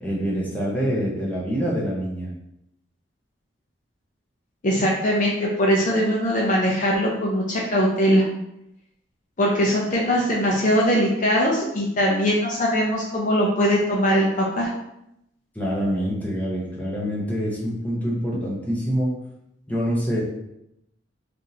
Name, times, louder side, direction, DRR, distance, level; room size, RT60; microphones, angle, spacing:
voice 1, 0.0-2.3 15.5-19.1 19.7-20.2, equal, 10° left, -6 dB, 0.8 m, -25 dB
voice 2, 4.6-8.2 9.4-14.7, equal, 40° left, -3 dB, 0.5 m, -21 dB
3.5 x 2.5 x 2.8 m, 0.81 s
head